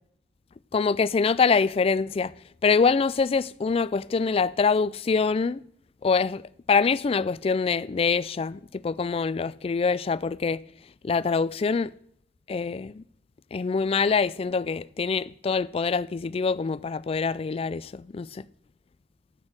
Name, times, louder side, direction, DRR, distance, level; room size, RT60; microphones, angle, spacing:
voice 1, 0.7-2.3 2.6-5.6 6.0-6.4 6.7-10.6 11.0-11.9 12.5-13.0 13.5-18.4, left 5 dB, 35° left, 0.3 m, -24 dB
9.6 x 8.3 x 6.3 m
head